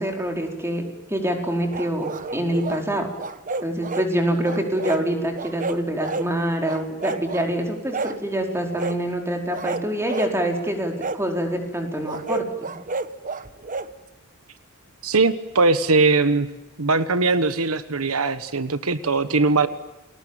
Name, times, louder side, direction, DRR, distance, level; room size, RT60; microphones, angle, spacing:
voice 1, 0.0-3.1 3.6-12.7, right 1 dB, 10° right, 3 dB, 4.9 m, -25 dB
sound 1, 1.7-2.8 3.2-4.1 4.4-5.0 5.3-6.3 6.6-7.5 7.9-8.2 8.8-9.0 9.5-10.3 11.0-11.2 12.0-13.9, right 3 dB, 40° right, 1.2 m, -30 dB
voice 2, 15.0-16.5 16.8-19.7, right 3 dB, 85° right, 12 dB, 1.3 m, -20 dB
30.0 x 21.5 x 9.1 m, 1.0 s
head